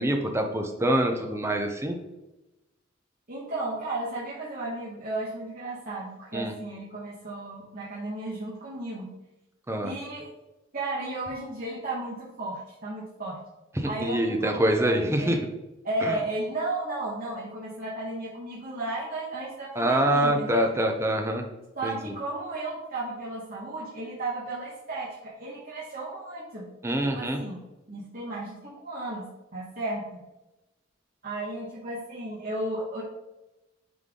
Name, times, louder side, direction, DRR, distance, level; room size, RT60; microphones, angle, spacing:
voice 1, 0.0-2.0 6.3-6.5 9.7-9.9 13.8-15.4 16.0-16.1 19.8-21.5 21.8-22.0 26.8-27.4, right 1 dB, 15° right, 3 dB, 0.7 m, -25 dB
voice 2, 3.3-9.1 9.8-10.3 10.7-13.4 13.8-15.4 15.8-20.7 21.7-26.7 27.0-27.6 27.9-30.2 31.2-33.0, right 2 dB, 45° right, -8 dB, 1.4 m, -34 dB
9.4 x 3.4 x 3.8 m, 0.99 s
head